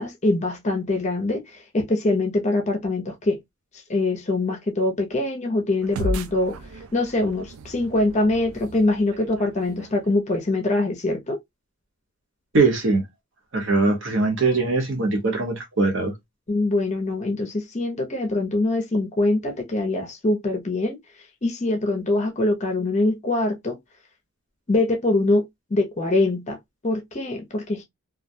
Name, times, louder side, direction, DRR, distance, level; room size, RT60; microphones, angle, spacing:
voice 1, 0.0-3.4 3.9-6.6 6.9-11.4 16.5-21.0 21.4-23.8 24.7-25.4 25.7-26.6 26.8-27.8, left 2 dB, 30° left, 0.5 m, -23 dB
sound 1, 5.8-10.5, equal, 75° right, 0.4 m, -35 dB
voice 2, 12.5-13.0 13.5-16.1, right 3 dB, 60° right, 0.9 m, -21 dB
2.3 x 2.1 x 2.6 m
head